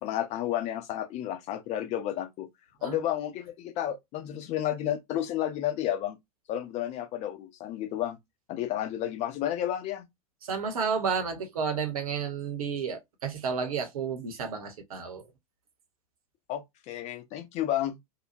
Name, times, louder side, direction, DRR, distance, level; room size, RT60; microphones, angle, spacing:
voice 1, 0.0-2.5 2.8-6.2 6.5-8.2 8.5-10.1 16.5-18.0, left 12 dB, 35° left, 0.8 m, -31 dB
voice 2, 10.4-15.3, right 6 dB, 65° right, 1.0 m, -31 dB
2.9 x 2.2 x 2.5 m
figure-of-eight pair, 90°, 20 cm